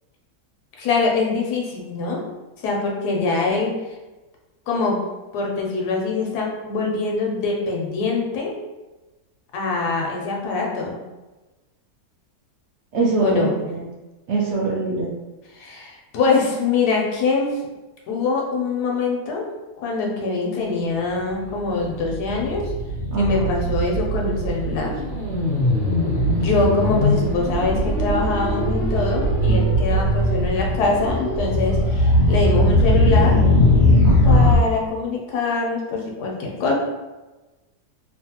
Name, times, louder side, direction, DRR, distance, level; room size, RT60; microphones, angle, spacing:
voice 1, 0.8-2.2 2.6-3.7 4.7-5.0 5.3-8.5 9.5-11.0 13.2-13.6 15.5-17.5 18.1-19.5 19.8-22.7 23.2-24.9 26.3-33.4 34.2-36.7, left 3 dB, 85° left, -1 dB, 1.2 m, -23 dB
voice 2, 12.9-13.9 14.3-15.1 23.1-23.6 34.0-34.6, right 3 dB, 70° right, -5 dB, 0.6 m, -23 dB
sound 1, 21.5-34.6, left 1 dB, 30° left, 1.1 m, -20 dB
3.1 x 2.1 x 2.8 m, 1.1 s
omnidirectional pair, 1.7 m